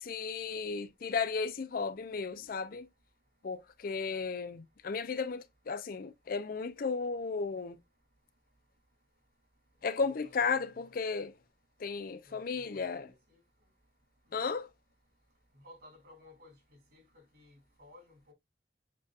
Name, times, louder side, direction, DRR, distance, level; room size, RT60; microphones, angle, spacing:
voice 1, 0.0-2.9 3.4-7.8 9.8-11.3 11.8-13.1 14.3-14.7, left 5 dB, 50° left, 0.4 m, -34 dB
voice 2, 10.0-10.7 12.3-12.8 13.3-13.4 15.6-16.5 16.9-18.3, left 1 dB, 60° right, 2.8 m, -57 dB
7.5 x 2.7 x 2.4 m
head